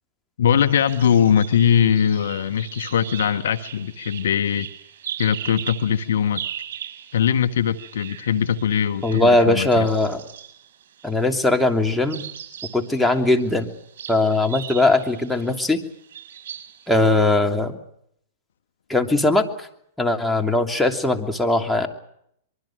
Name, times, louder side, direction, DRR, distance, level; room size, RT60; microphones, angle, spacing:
voice 1, 0.4-4.7 5.2-6.4 7.1-9.9, left 8 dB, 75° left, 12 dB, 1.4 m, -21 dB
sound 1, 0.7-11.3 12.0-17.4, right 10 dB, 65° right, 7.4 m, -39 dB
voice 2, 9.0-10.2 11.0-12.3 12.7-13.7 14.1-15.8 16.9-17.8 18.9-19.7 20.0-21.9, left 2 dB, 5° left, 3 dB, 3.0 m, -20 dB
24.5 x 23.5 x 6.4 m, 0.73 s
hypercardioid pair, 115°, 0 cm